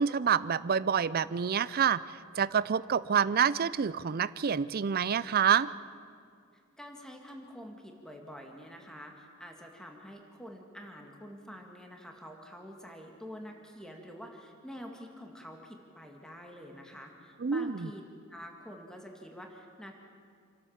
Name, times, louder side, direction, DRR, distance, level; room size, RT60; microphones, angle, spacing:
voice 1, 0.0-5.7 17.4-17.9, right 7 dB, 45° right, 17 dB, 0.5 m, -27 dB
voice 2, 6.8-18.0 18.3-19.9, equal, 5° left, 2 dB, 2.1 m, -47 dB
28.0 x 13.0 x 7.3 m, 2.2 s
head